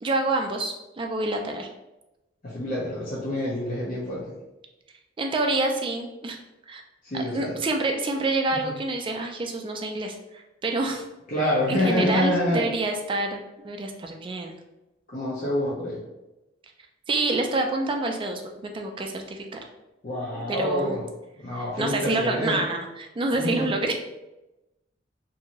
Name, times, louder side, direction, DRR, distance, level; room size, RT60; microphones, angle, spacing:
voice 1, 0.0-1.7 5.2-6.4 6.7-6.8 7.1-11.1 11.7-14.5 17.1-19.6 20.3-20.9 21.5-23.9, right 2 dB, 30° right, 3 dB, 0.3 m, -27 dB
voice 2, 2.4-4.3 7.0-7.6 8.5-8.7 11.3-12.7 15.1-16.0 20.0-21.0 21.4-22.6 23.3-23.7, left 1 dB, 45° left, -7 dB, 0.6 m, -27 dB
2.7 x 2.5 x 2.9 m, 0.97 s
head